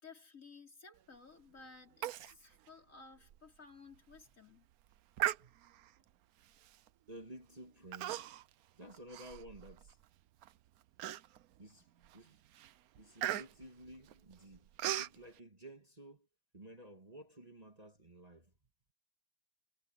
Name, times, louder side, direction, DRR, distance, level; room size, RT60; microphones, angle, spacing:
voice 1, 0.0-4.7, left 4 dB, 45° left, 4.2 m, -56 dB
Human voice, 2.0-2.3 2.7-2.8 3.3-3.4 3.9-4.2 5.2-5.9 6.7-6.9 7.9-8.5 8.9-9.9 10.4-10.5 11.0-11.6 12.0-12.3 12.5-15.2, right 12 dB, 65° right, 1.0 m, -38 dB
voice 2, 7.1-8.4 8.7-10.0 11.6-12.4 13.0-14.7 15.0-16.3 16.5-18.5, right 1 dB, 20° right, 2.2 m, -53 dB
omnidirectional pair, 1.9 m